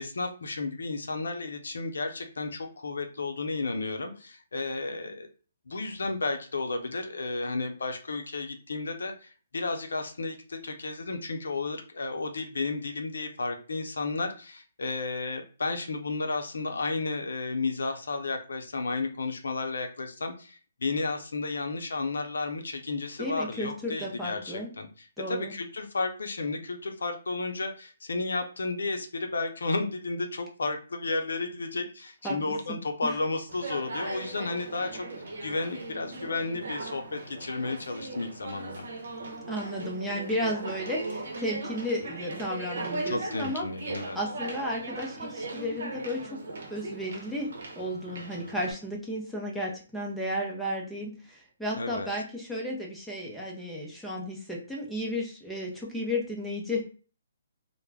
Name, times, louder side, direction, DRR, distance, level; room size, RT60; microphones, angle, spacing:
voice 1, 0.0-5.3 5.7-35.1 35.4-38.9 43.1-44.2 51.8-52.1, left 3 dB, 85° left, 5 dB, 0.6 m, -33 dB
voice 2, 23.2-24.7 25.2-25.5 32.2-32.4 33.0-33.1 39.5-43.7 44.1-46.4 46.7-56.9, left 1 dB, ahead, -4 dB, 0.6 m, -33 dB
Conversation, 33.5-48.7, right 2 dB, 70° right, 0.7 m, -38 dB
2.3 x 2.1 x 3.3 m, 0.38 s
hypercardioid pair, 155°, 0 cm